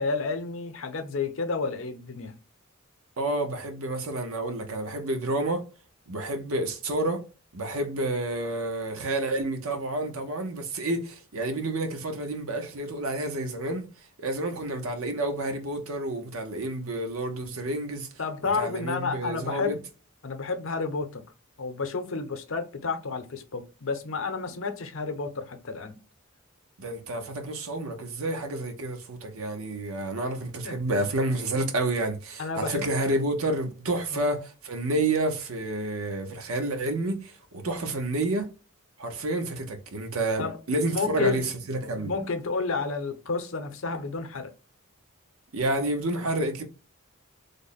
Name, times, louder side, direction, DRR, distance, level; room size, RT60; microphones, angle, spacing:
voice 1, 0.0-2.3 18.2-19.8 20.2-21.2 21.6-26.0 30.6-30.8 32.4-32.8 34.1-34.2 40.4-40.6 40.9-41.4 42.0-44.5, left 4 dB, 65° left, 0.6 m, -30 dB
voice 2, 3.2-5.6 6.1-7.2 7.5-18.1 18.4-19.8 26.8-38.5 39.0-42.1 45.5-46.6, right 2 dB, 75° right, 0.8 m, -29 dB
3.4 x 2.1 x 4.0 m
head